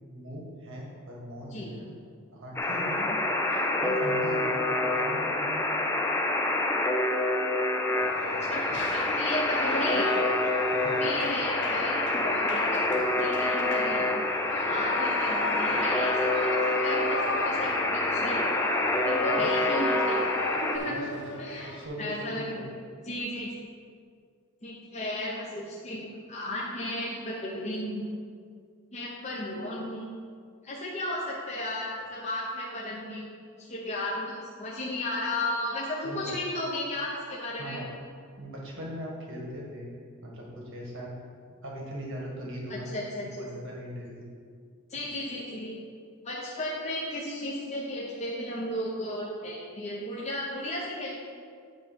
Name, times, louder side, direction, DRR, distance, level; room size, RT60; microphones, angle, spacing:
voice 1, 0.1-1.8 2.3-3.1 3.8-4.6 4.8-5.7 10.7-11.0 17.5-17.6 19.3-19.5 20.8-22.7 36.0-36.3 37.6-37.9 38.4-39.9 40.2-41.1 41.6-42.9 43.2-44.2, equal, 60° right, -2 dB, 1.6 m, -40 dB
voice 2, 1.5-1.9 3.5-3.7 8.5-10.1 11.0-14.1 14.7-18.5 19.0-20.2 20.6-21.0 21.4-21.7 22.0-22.7 23.0-23.5 24.6-28.0 28.9-30.0 30.6-33.3 33.6-37.8 42.9-43.7 44.9-45.8 46.2-51.1, left 1 dB, 30° left, -5 dB, 1.0 m, -34 dB
Alarm, 2.6-20.8, left 2 dB, 10° left, 0.5 m, -27 dB
Shout / Cheering, 8.0-21.9, left 3 dB, 55° left, 0.6 m, -37 dB
9.4 x 3.3 x 6.8 m, 2.1 s
head